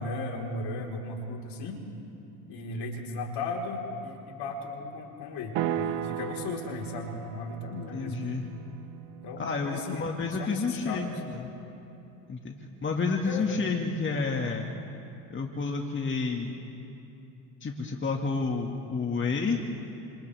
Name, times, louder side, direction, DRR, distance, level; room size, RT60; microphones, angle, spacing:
voice 1, 0.0-1.8 2.5-8.2 9.2-10.0 10.4-11.1 13.2-13.6, left 3 dB, 55° left, -1 dB, 4.4 m, -36 dB
sound 1, 5.5-9.7, right 10 dB, 60° right, 1.0 m, -35 dB
voice 2, 7.9-8.5 9.4-11.5 12.3-12.5 12.8-14.7 15.3-16.6 17.6-19.6, left 4 dB, 25° left, 1 dB, 2.0 m, -30 dB
27.5 x 27.0 x 3.5 m, 2.8 s
hypercardioid pair, 80°, 47 cm